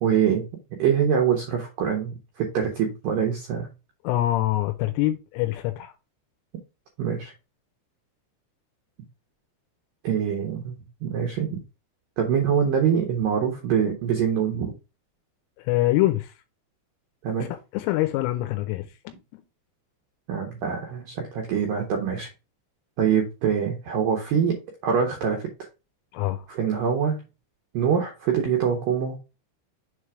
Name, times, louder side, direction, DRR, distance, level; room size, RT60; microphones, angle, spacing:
voice 1, 0.0-0.4 0.8-3.7 7.0-7.3 10.0-11.6 12.2-14.7 17.2-17.5 20.3-22.3 23.0-24.6 24.8-25.5 26.5-27.2 27.7-29.2, right 7 dB, 90° right, 2.0 m, -24 dB
voice 2, 4.0-5.9 15.6-16.3 17.4-19.4 26.1-26.5, left 15 dB, 85° left, 3.2 m, -25 dB
7.3 x 3.3 x 4.8 m
omnidirectional pair, 5.8 m